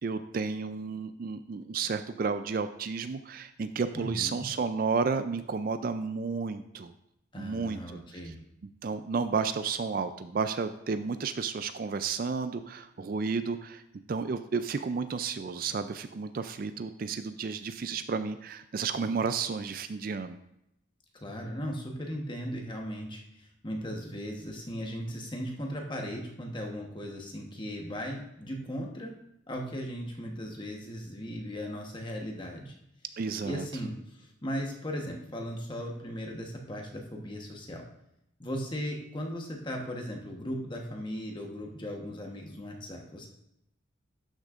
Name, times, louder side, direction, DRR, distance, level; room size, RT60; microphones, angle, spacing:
voice 1, 0.0-6.9 7.4-7.8 8.8-13.8 14.1-20.4 33.2-33.7, right 5 dB, 45° right, 10 dB, 0.3 m, -32 dB
voice 2, 4.0-4.5 7.3-8.4 21.1-29.1 29.5-32.7 33.4-37.9 38.4-43.3, equal, 25° left, 1 dB, 1.1 m, -37 dB
11.5 x 6.3 x 2.5 m, 0.81 s
head